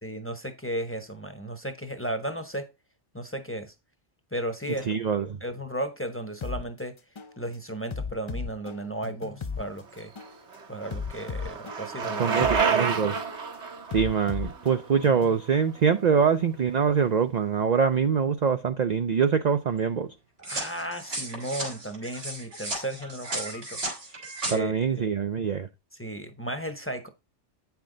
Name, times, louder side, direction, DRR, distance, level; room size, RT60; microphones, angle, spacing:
voice 1, 0.0-2.7 3.1-3.7 4.3-4.9 5.4-7.0 7.4-10.1 10.7-12.4 12.8-13.0 20.4-23.8 24.5-24.7 25.9-27.1, right 1 dB, 10° left, 0.9 m, -34 dB
voice 2, 4.9-5.4 12.2-13.2 13.9-20.1 24.5-25.7, right 6 dB, 50° right, 0.5 m, -24 dB
sound 1, 6.4-6.6 7.2-7.4 7.9-9.6 10.2-10.4 10.9-12.6 13.2-13.4 13.9-15.4, left 5 dB, 40° left, 0.4 m, -35 dB
Bicycle, 10.0-16.0, right 6 dB, 70° right, 1.4 m, -30 dB
sound 2, 20.4-24.5, right 2 dB, 85° right, 3.1 m, -35 dB
8.7 x 5.9 x 3.8 m
omnidirectional pair, 1.2 m